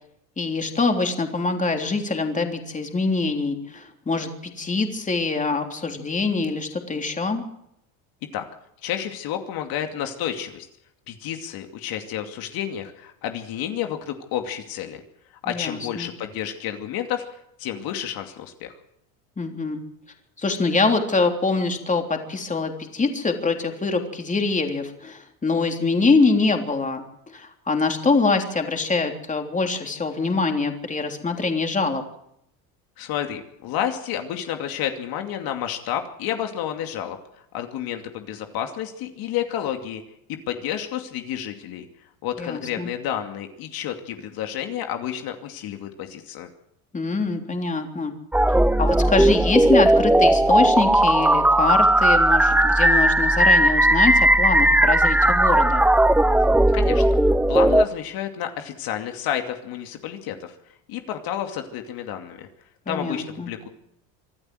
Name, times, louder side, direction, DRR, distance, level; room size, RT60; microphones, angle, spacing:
voice 1, 0.4-7.4 15.5-16.1 19.4-19.8 20.4-32.0 42.4-42.9 46.9-48.1 48.8-55.9 62.9-63.5, left 3 dB, 20° left, 4 dB, 3.5 m, -24 dB
voice 2, 8.8-10.7 11.1-15.0 15.4-18.7 33.0-40.0 40.3-41.9 42.2-46.5 56.7-57.2 57.5-60.6 60.9-62.5 62.9-63.7, left 10 dB, 60° left, 5 dB, 2.6 m, -30 dB
sound 1, 48.3-57.8, right 1 dB, 5° right, 0.8 m, -17 dB
25.5 x 13.0 x 7.9 m, 0.78 s
supercardioid pair, 95°, 40 cm